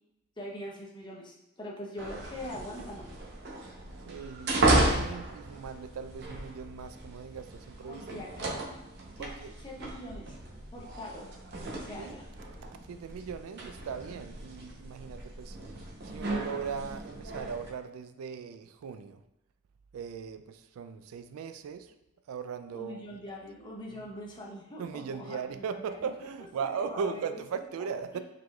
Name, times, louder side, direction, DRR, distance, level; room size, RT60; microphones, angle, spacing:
voice 1, 0.4-3.1 7.9-8.8 9.2-9.3 9.6-10.4 10.7-11.3 11.7-12.2 22.7-26.0 26.9-27.4, left 1 dB, 20° left, -2 dB, 0.6 m, -42 dB
sound 1, 2.0-17.7, right 2 dB, 50° right, 0.7 m, -34 dB
voice 2, 4.1-8.2 9.2-9.5 12.0-12.2 12.8-15.6 16.0-19.2 19.9-21.9 22.3-23.2 23.9-24.0 24.8-28.2, right 6 dB, 80° right, 11 dB, 0.3 m, -38 dB
4.8 x 3.8 x 2.3 m, 0.89 s
head